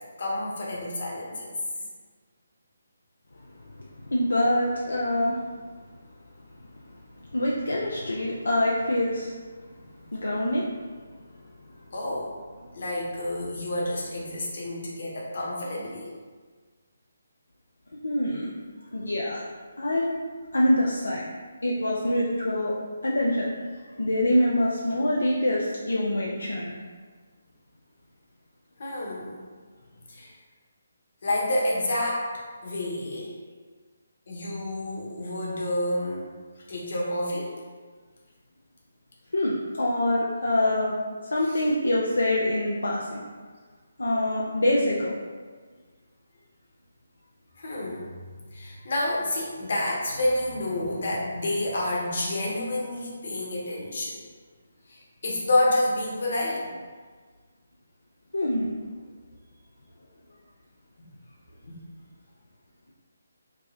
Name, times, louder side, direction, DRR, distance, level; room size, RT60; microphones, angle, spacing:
voice 1, 0.2-1.5 11.9-12.3 12.7-16.1 28.8-29.4 30.1-30.3 31.2-32.3 32.6-33.3 34.3-36.3 36.7-37.5 41.4-41.6 47.6-48.1 48.5-54.2 54.9-56.7 61.7-61.8, left 1 dB, 55° left, -4 dB, 1.0 m, -29 dB
voice 2, 4.1-5.4 7.3-9.3 10.1-10.7 18.0-18.5 18.9-19.4 19.8-20.2 20.5-21.2 21.6-22.8 23.0-23.5 24.0-26.7 39.3-40.9 41.3-43.2 44.0-45.1 58.3-58.7, left 1 dB, 80° left, -3 dB, 0.4 m, -25 dB
5.1 x 2.1 x 2.8 m, 1.5 s
figure-of-eight pair, 150°, 0 cm